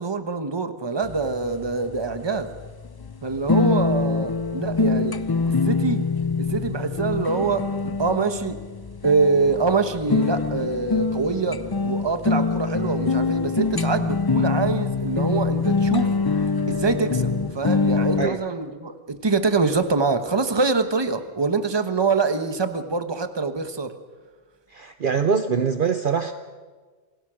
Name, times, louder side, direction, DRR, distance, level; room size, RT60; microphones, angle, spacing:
voice 1, 0.0-2.5 3.2-5.2 5.6-6.1 6.4-8.6 9.0-16.1 16.7-23.9, right 4 dB, 25° right, 9 dB, 1.1 m, -24 dB
sound 1, 1.0-18.3, left 4 dB, 30° left, 0.4 m, -24 dB
voice 2, 24.7-26.3, right 6 dB, 50° right, 9 dB, 0.9 m, -23 dB
27.5 x 17.0 x 6.3 m, 1.4 s
omnidirectional pair, 1.2 m